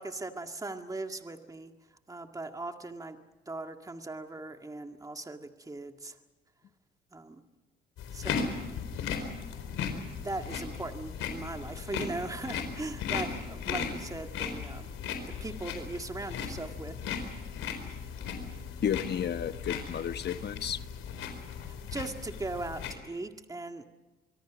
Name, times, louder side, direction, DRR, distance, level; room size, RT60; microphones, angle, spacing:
voice 1, 0.0-1.7 2.1-3.2 3.5-6.2 7.1-7.4 8.1-8.5 10.2-14.9 15.3-17.0 21.9-23.9, right 2 dB, 15° right, 5 dB, 2.0 m, -39 dB
sound 1, 8.0-22.9, left 6 dB, 75° left, 4.3 m, -37 dB
voice 2, 18.8-20.8, left 9 dB, 55° left, 11 dB, 1.2 m, -32 dB
25.0 x 23.5 x 6.2 m, 1.2 s
supercardioid pair, 65°, 21 cm